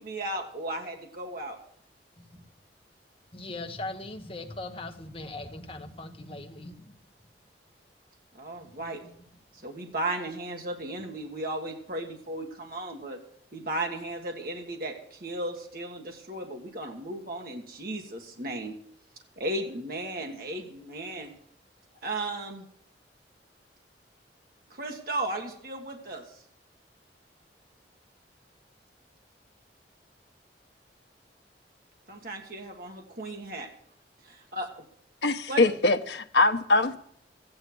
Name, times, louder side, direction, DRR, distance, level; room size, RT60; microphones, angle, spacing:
voice 1, 0.0-1.6 8.3-9.0 9.6-13.2 13.5-18.8 19.4-21.4 22.0-22.7 24.7-26.2 32.1-33.7 34.3-34.7 35.5-35.6, right 1 dB, 55° right, 1.9 m, -35 dB
voice 2, 3.3-7.0 8.6-8.7 9.0-9.1, left 2 dB, 30° left, 1.2 m, -40 dB
voice 3, 35.2-37.0, left 2 dB, 75° left, 1.0 m, -23 dB
14.0 x 9.6 x 6.2 m
head